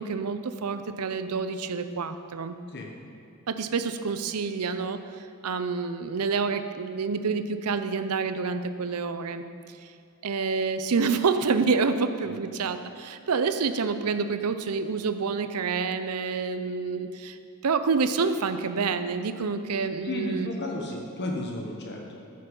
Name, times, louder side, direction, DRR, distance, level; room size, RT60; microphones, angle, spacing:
voice 1, 0.0-2.6 3.5-5.0 5.4-9.5 10.2-17.4 17.6-20.5, right 5 dB, 90° right, 10 dB, 0.6 m, -28 dB
voice 2, 20.0-22.2, left 1 dB, 50° left, 0 dB, 1.1 m, -33 dB
14.5 x 6.6 x 5.5 m, 2.5 s
head